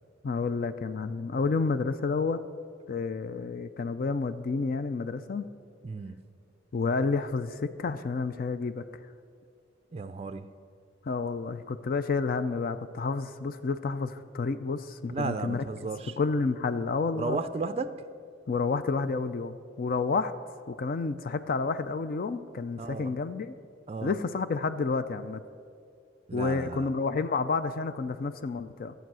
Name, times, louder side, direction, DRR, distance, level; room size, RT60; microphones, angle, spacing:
voice 1, 0.2-2.4 2.9-5.5 6.7-8.8 11.0-15.6 16.2-17.4 18.5-20.3 20.7-23.5 24.0-25.4 26.3-28.9, left 4 dB, 50° left, 11 dB, 0.4 m, -30 dB
voice 2, 5.8-6.2 9.9-10.5 15.1-16.1 17.1-18.0 22.8-23.1 23.9-24.1 26.3-26.9, right 4 dB, 35° right, 10 dB, 0.4 m, -34 dB
13.0 x 8.0 x 6.2 m, 2.4 s
head